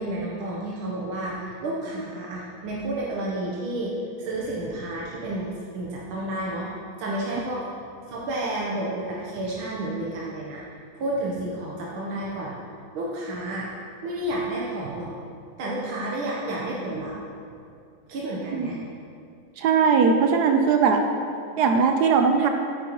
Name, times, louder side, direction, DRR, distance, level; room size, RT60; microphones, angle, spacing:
voice 1, 0.0-3.9 4.2-6.7 7.0-7.6 8.1-10.6 10.9-12.5 12.9-13.7 14.0-15.1 15.6-17.1 18.1-18.8, right 1 dB, 90° right, -4 dB, 1.8 m, -30 dB
voice 2, 18.5-18.8 19.6-21.0 21.6-22.5, right 5 dB, 70° right, 4 dB, 1.0 m, -20 dB
9.0 x 8.6 x 3.0 m, 2.4 s
omnidirectional pair, 2.2 m